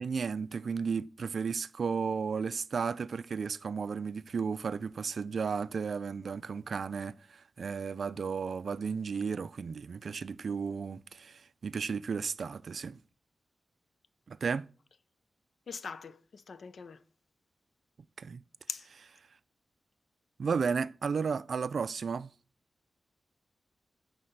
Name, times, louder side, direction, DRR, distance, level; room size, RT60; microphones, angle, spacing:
voice 1, 0.0-13.0 14.3-14.7 18.2-18.4 20.4-22.3, right 5 dB, 60° right, 0.3 m, -34 dB
voice 2, 15.7-17.0 18.7-18.9, left 5 dB, 65° left, 0.6 m, -42 dB
10.0 x 4.0 x 6.5 m
wide cardioid pair, 125°, 0 cm